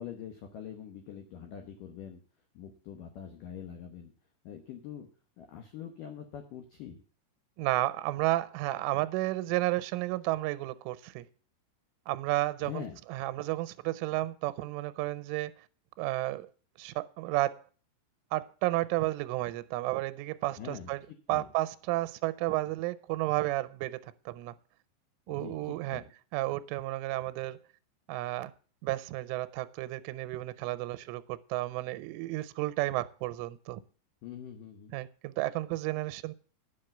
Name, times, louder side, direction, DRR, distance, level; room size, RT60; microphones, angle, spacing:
voice 1, 0.0-2.2 2.5-4.1 4.4-5.1 5.4-7.0 12.6-13.0 20.6-20.9 21.3-21.5 25.3-26.1 34.2-34.9, left 9 dB, 85° left, 1.9 m, -44 dB
voice 2, 7.6-11.3 12.1-12.8 13.1-15.5 16.0-16.5 16.8-17.6 18.3-21.0 21.3-24.6 25.3-26.0 26.3-27.6 28.1-28.5 28.8-33.8 34.9-36.3, right 17 dB, 90° right, 3.1 m, -32 dB
10.0 x 5.9 x 7.7 m
omnidirectional pair, 5.5 m